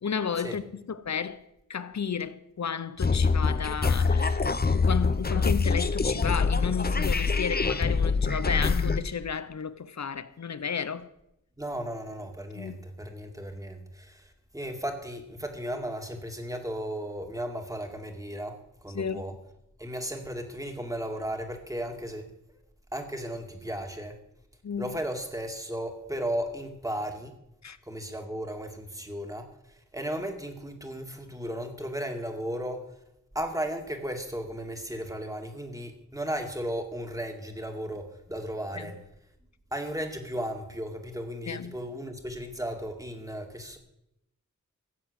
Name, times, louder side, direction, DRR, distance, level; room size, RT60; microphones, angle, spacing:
voice 1, 0.0-11.1 12.5-12.8 18.9-19.2 24.6-25.0 27.6-27.8 38.7-38.9 41.5-41.8, left 6 dB, 60° left, 0.8 m, -33 dB
sound 1, 3.0-9.0, left 4 dB, 30° left, 0.7 m, -25 dB
voice 2, 11.6-19.4 19.8-22.3 22.9-24.2 24.8-27.3 27.9-32.9 33.3-39.0 39.7-43.8, equal, 10° right, 2.1 m, -35 dB
15.5 x 7.2 x 8.0 m
wide cardioid pair, 100°, 30 cm